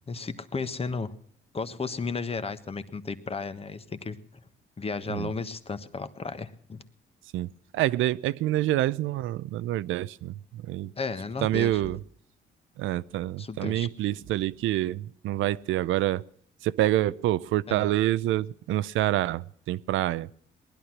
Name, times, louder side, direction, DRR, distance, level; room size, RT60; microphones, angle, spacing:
voice 1, 0.1-1.1 1.5-4.4 4.8-6.8 11.0-11.9 13.4-13.9 17.7-17.8, left 4 dB, 30° left, 1.3 m, -34 dB
voice 2, 7.3-10.9 11.4-12.0 12.8-16.2 16.6-20.3, right 14 dB, 85° right, 0.6 m, -27 dB
19.5 x 11.5 x 6.0 m
cardioid pair, 90°, 20 cm